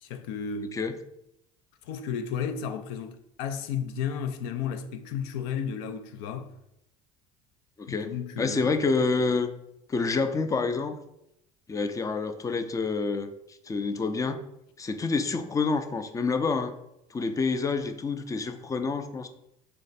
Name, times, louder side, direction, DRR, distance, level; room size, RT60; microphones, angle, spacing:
voice 1, 0.0-0.7 1.8-6.5 7.9-8.7, left 7 dB, 70° left, 0.5 m, -33 dB
voice 2, 7.8-8.1 8.4-9.5 9.9-11.0 11.7-13.3 13.7-14.4 14.8-16.7 17.1-19.3, left 4 dB, 20° left, 0.4 m, -27 dB
3.3 x 3.2 x 4.0 m
hypercardioid pair, 85°, 18 cm